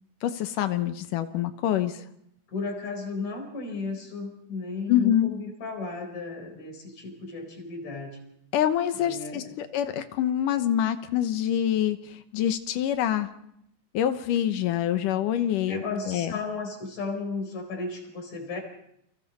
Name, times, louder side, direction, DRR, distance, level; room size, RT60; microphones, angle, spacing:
voice 1, 0.2-2.0 4.9-5.3 8.5-13.3 13.9-16.3, left 11 dB, 85° left, 10 dB, 2.6 m, -26 dB
voice 2, 2.5-8.2 8.9-9.5 15.6-18.6, left 3 dB, 60° left, 3 dB, 5.6 m, -34 dB
29.5 x 24.5 x 4.2 m, 0.75 s
omnidirectional pair, 3.7 m